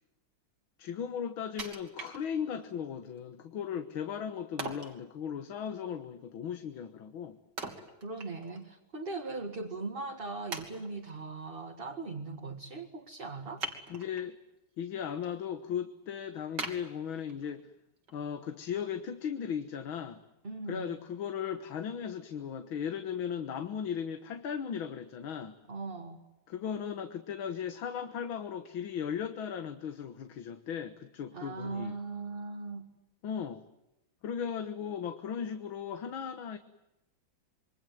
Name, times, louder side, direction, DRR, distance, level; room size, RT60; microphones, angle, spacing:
voice 1, 0.8-7.4 13.9-14.4 14.8-17.7 18.1-20.2 20.7-25.5 26.5-31.9 33.2-33.6 34.2-36.6, left 8 dB, 85° left, 9 dB, 2.1 m, -37 dB
Wood, 1.6-2.7 3.2-3.3 4.6-5.0 7.6-8.7 9.0-9.1 9.8-9.9 10.5-11.2 13.6-14.3 14.8-15.3 15.7-15.8 16.6-17.6 18.1-18.2, right 3 dB, 60° right, 3.6 m, -41 dB
voice 2, 8.0-13.7 20.4-20.9 25.7-26.2 31.3-32.9, right 3 dB, 30° right, 2 dB, 2.1 m, -39 dB
27.0 x 23.5 x 9.2 m, 0.93 s
omnidirectional pair, 2.1 m